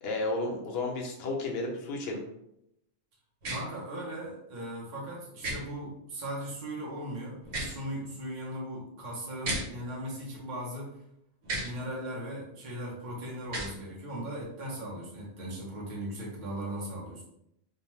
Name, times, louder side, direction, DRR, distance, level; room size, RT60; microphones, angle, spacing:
voice 1, 0.0-2.2, left 2 dB, 65° left, 0 dB, 0.8 m, -32 dB
sound 1, 3.4-3.6 5.4-5.6 7.4-7.8 9.4-9.6 11.4-11.7 13.4-13.7, right 2 dB, 85° right, 1.1 m, -33 dB
voice 2, 3.5-10.9 11.6-17.2, right 1 dB, 45° right, -5 dB, 0.9 m, -38 dB
2.7 x 2.1 x 3.0 m, 0.79 s
omnidirectional pair, 1.2 m